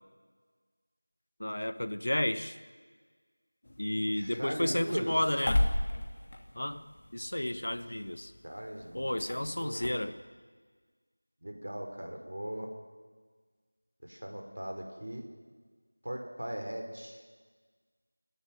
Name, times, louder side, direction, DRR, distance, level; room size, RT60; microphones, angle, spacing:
voice 1, 1.4-2.6 3.8-5.7 6.5-6.8 7.1-8.3 8.9-10.2, left 1 dB, 60° left, 12 dB, 1.4 m, -32 dB
sound 1, 3.6-9.9, left 1 dB, 35° left, 2.7 m, -36 dB
voice 2, 4.2-5.1 8.4-9.1 9.6-10.0 11.4-12.7 14.0-15.2 16.0-17.2, right 1 dB, 65° right, 3 dB, 5.4 m, -39 dB
28.0 x 12.5 x 9.6 m, 1.5 s
figure-of-eight pair, 175°, 0 cm